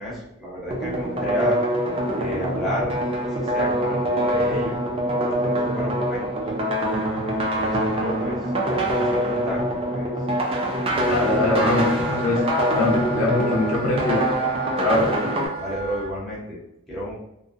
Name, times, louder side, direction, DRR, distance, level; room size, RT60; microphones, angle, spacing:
voice 1, 0.0-1.6 2.2-2.9 3.3-6.3 7.3-9.6 9.9-10.1 10.9-11.4 15.5-16.6 16.9-17.1, equal, ahead, -7 dB, 0.7 m, -31 dB
sound 1, 0.7-15.5, right 1 dB, 25° right, 0.4 m, -24 dB
Wind instrument woodwind instrument, 10.9-16.1, right 1 dB, 35° left, 0.8 m, -34 dB
voice 2, 11.1-14.3 14.8-15.1, left 2 dB, 70° left, -2 dB, 0.6 m, -22 dB
2.5 x 2.1 x 2.4 m, 0.82 s
head